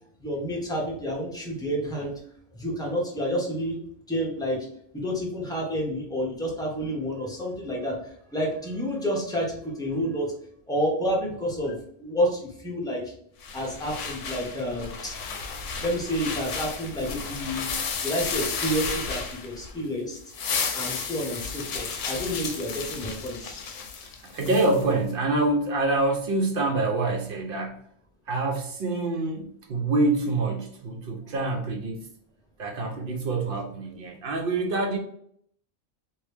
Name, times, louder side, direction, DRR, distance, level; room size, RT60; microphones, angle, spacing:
voice 1, 0.2-2.2 2.5-3.8 4.1-4.6 4.9-10.3 10.7-13.1 13.5-15.1 15.8-17.7 18.0-20.2 20.7-23.6, equal, 5° left, -3 dB, 0.7 m, -29 dB
sound 1, 13.4-19.8 20.2-24.8, left 5 dB, 70° left, 0.9 m, -33 dB
voice 2, 24.2-27.9 28.3-32.1 32.6-35.0, right 2 dB, 60° right, 2 dB, 0.6 m, -26 dB
2.9 x 2.7 x 3.3 m, 0.65 s
omnidirectional pair, 1.4 m